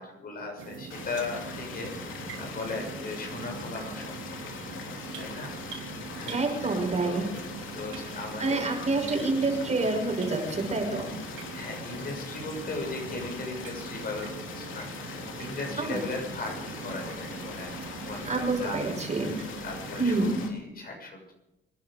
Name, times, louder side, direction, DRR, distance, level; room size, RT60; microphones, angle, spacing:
voice 1, 0.0-4.2 4.7-6.8 7.0-7.3 7.7-8.7 9.0-9.3 11.5-17.7 18.0-18.8 19.1-21.3, left 3 dB, 50° left, 2 dB, 6.8 m, -38 dB
sound 1, 0.6-20.3, right 6 dB, 75° right, 2.7 m, -42 dB
sound 2, 0.9-20.5, left 5 dB, 80° left, 3.1 m, -41 dB
voice 2, 6.2-7.2 8.4-11.1 15.8-16.0 18.3-19.4 20.0-20.5, right 3 dB, 35° right, 1 dB, 6.2 m, -27 dB
26.0 x 10.5 x 5.2 m, 0.93 s
cardioid pair, 90°, 20 cm